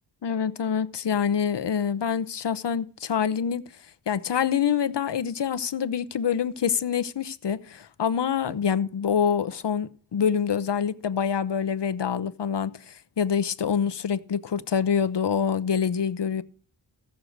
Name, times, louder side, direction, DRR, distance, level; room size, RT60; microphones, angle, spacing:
voice 1, 0.2-3.7 4.1-16.4, left 7 dB, 70° left, 0.9 m, -26 dB
16.0 x 6.7 x 7.9 m
wide cardioid pair, 105°, 43 cm